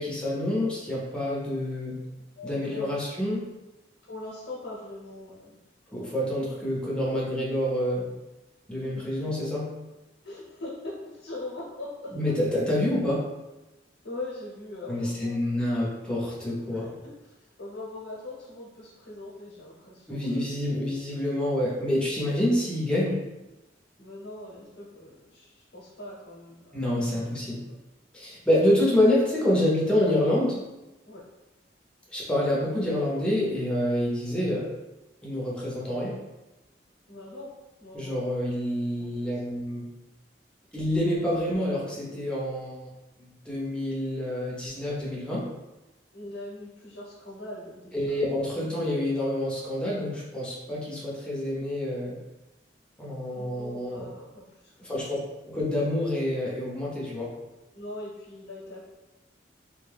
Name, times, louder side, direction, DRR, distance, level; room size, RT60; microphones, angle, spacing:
voice 1, 0.0-2.0 2.4-3.4 5.9-8.1 8.7-9.7 12.1-13.2 14.9-16.9 20.1-23.2 26.7-27.6 28.1-30.6 32.1-34.7 35.2-36.2 37.9-39.9 40.7-42.8 43.2-45.4 47.9-52.2 53.0-54.1 54.8-55.2 55.4-57.3, left 1 dB, 5° left, -6 dB, 0.7 m, -27 dB
voice 2, 2.3-3.0 4.0-5.6 8.9-9.3 10.2-12.3 14.0-15.6 16.7-20.5 24.0-27.1 31.0-31.2 37.1-37.5 37.8-38.2 39.0-39.1 46.1-48.3 53.3-55.1 57.7-58.8, left 2 dB, 90° left, -6 dB, 0.8 m, -41 dB
2.6 x 2.3 x 3.3 m, 1.0 s
head